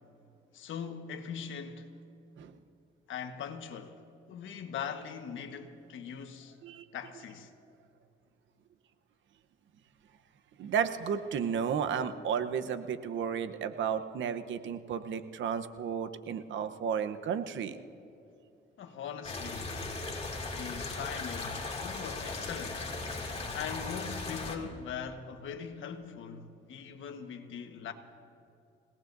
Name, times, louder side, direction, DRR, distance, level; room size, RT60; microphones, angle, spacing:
voice 1, 0.5-1.9 3.1-4.0 4.3-6.6 6.9-7.5 18.8-19.7 20.5-22.9 23.5-27.9, left 7 dB, 75° left, 1.4 m, -41 dB
voice 2, 10.6-17.8, right 7 dB, 70° right, 0.9 m, -33 dB
sound 1, 19.2-24.6, left 3 dB, 30° left, 2.4 m, -37 dB
28.5 x 18.0 x 2.7 m
cardioid pair, 90°, 20 cm